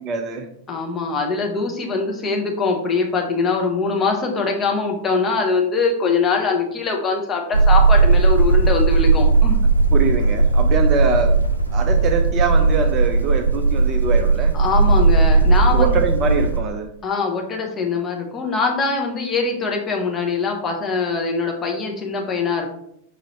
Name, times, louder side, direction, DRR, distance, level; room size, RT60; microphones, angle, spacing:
voice 1, 0.0-0.5 9.9-11.3 11.7-14.5 15.7-16.9, right 5 dB, 35° right, 6 dB, 0.5 m, -23 dB
voice 2, 0.7-9.6 14.5-16.0 17.0-22.7, left 4 dB, 25° left, 1 dB, 0.9 m, -22 dB
sound 1, 7.5-16.6, right 3 dB, 85° left, 0.4 m, -16 dB
5.5 x 2.6 x 3.1 m, 0.71 s
figure-of-eight pair, 90°, 0 cm